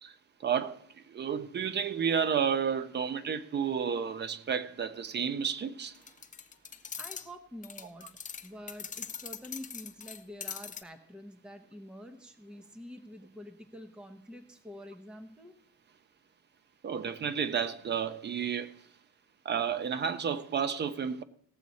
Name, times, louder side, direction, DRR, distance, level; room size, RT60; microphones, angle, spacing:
voice 1, 0.4-5.9 16.8-18.8 19.4-21.2, right 7 dB, 30° right, 0.6 m, -31 dB
sound 1, 5.9-7.3 7.6-10.8, left 7 dB, 25° left, 0.5 m, -42 dB
voice 2, 7.0-8.1 8.4-15.5, equal, 5° right, 0.8 m, -47 dB
18.0 x 7.3 x 4.1 m
cardioid pair, 165°, 34 cm